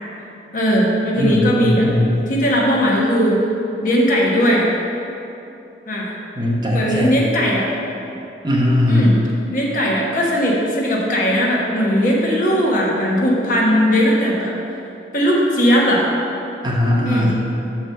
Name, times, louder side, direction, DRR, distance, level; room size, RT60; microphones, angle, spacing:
voice 1, 0.5-1.9 2.3-3.4 3.8-4.7 5.9-6.1 6.7-7.7 8.9-9.1 9.5-14.5 15.1-16.1 17.0-17.3, equal, 50° left, -3 dB, 1.3 m, -18 dB
voice 2, 1.2-2.1 6.4-7.2 8.4-9.1 16.6-17.4, left 1 dB, 25° right, -3 dB, 0.9 m, -18 dB
6.2 x 4.9 x 6.5 m, 2.8 s
head